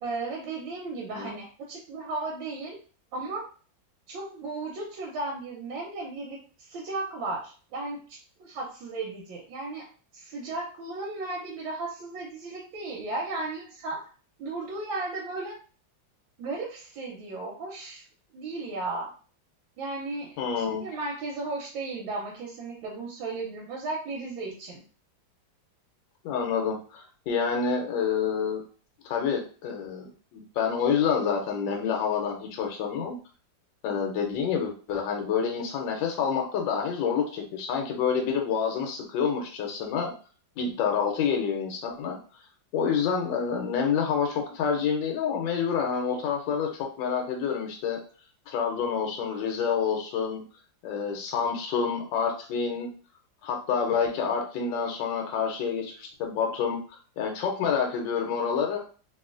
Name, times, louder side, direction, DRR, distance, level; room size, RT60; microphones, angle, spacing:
voice 1, 0.0-2.8 3.1-3.4 4.1-9.9 10.1-14.0 14.4-15.6 16.4-18.0 18.3-19.1 19.8-24.8, right 3 dB, 85° right, -2 dB, 1.5 m, -35 dB
voice 2, 20.4-20.8 26.2-28.6 29.0-33.2 33.8-40.1 40.6-42.2 42.7-48.0 48.5-50.4 50.8-52.9 53.4-58.8, left 6 dB, 75° left, 2 dB, 1.3 m, -28 dB
2.9 x 2.8 x 2.4 m, 0.39 s
omnidirectional pair, 2.1 m